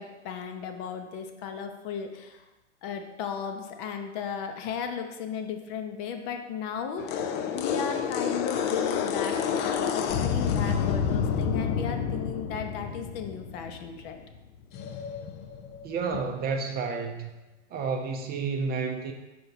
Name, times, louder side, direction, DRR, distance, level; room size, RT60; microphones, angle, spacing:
voice 1, 0.0-2.4 2.8-14.2 15.3-15.4 16.1-16.2, left 7 dB, 45° left, 5 dB, 0.8 m, -36 dB
sound 1, 7.0-14.4 14.7-16.1, left 7 dB, 30° left, 0.4 m, -29 dB
voice 2, 15.8-17.3 17.7-19.1, right 5 dB, 25° right, 3 dB, 0.6 m, -30 dB
5.2 x 4.6 x 4.0 m, 1.1 s
hypercardioid pair, 110°, 37 cm